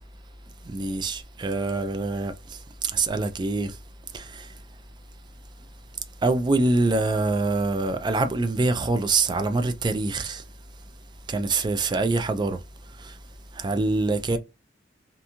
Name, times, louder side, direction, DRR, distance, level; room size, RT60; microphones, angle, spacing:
voice 1, 0.7-3.8 4.1-4.5 6.2-10.4 11.3-12.6 13.0-13.1 13.6-14.4, right 3 dB, 25° right, 0.3 m, -25 dB
2.5 x 2.3 x 2.8 m
head